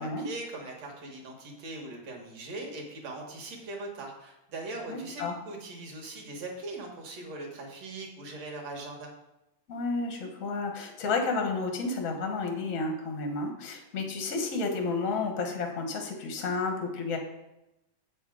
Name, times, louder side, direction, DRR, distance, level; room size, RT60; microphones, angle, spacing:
voice 1, 0.0-9.1, right 2 dB, 60° right, 0 dB, 2.3 m, -40 dB
voice 2, 4.9-5.3 9.7-17.2, left 3 dB, 70° left, 3 dB, 0.7 m, -31 dB
8.1 x 6.4 x 4.9 m, 0.92 s
omnidirectional pair, 3.7 m